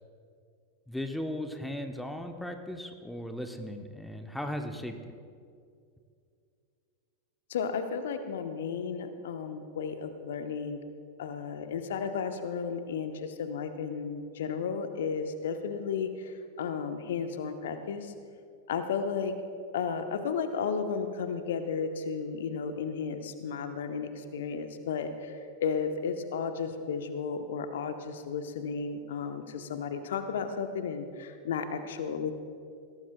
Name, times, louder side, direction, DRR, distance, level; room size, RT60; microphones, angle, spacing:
voice 1, 0.9-5.0, left 1 dB, 5° left, 6 dB, 0.9 m, -37 dB
voice 2, 7.5-10.8 11.2-18.1 18.7-19.3 19.7-32.3, left 6 dB, 60° left, 8 dB, 0.9 m, -33 dB
21.5 x 17.5 x 2.2 m, 2.3 s
figure-of-eight pair, 90°, 0 cm